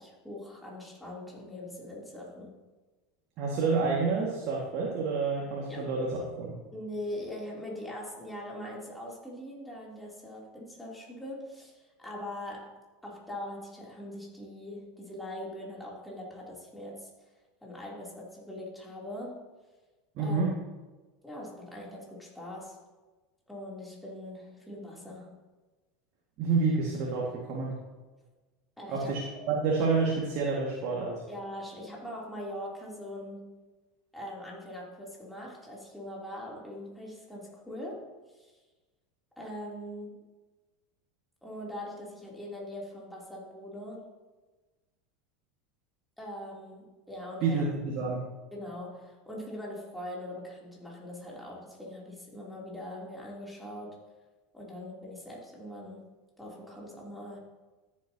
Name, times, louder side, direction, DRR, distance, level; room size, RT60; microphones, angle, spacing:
voice 1, 0.0-2.6 5.7-5.9 6.7-17.1 17.6-19.4 20.2-20.4 21.2-22.8 23.5-25.4 28.8-29.2 31.3-33.6 34.1-38.6 39.4-40.2 41.4-44.1 46.2-47.6 48.5-54.0 54.5-56.1 56.4-57.4, left 1 dB, 5° left, -4 dB, 3.1 m, -42 dB
voice 2, 3.4-6.6 20.2-20.5 26.4-27.8 28.9-31.2 47.4-48.2, right 4 dB, 50° right, -2 dB, 1.9 m, -29 dB
14.0 x 7.4 x 2.9 m, 1.2 s
hypercardioid pair, 80°, 0 cm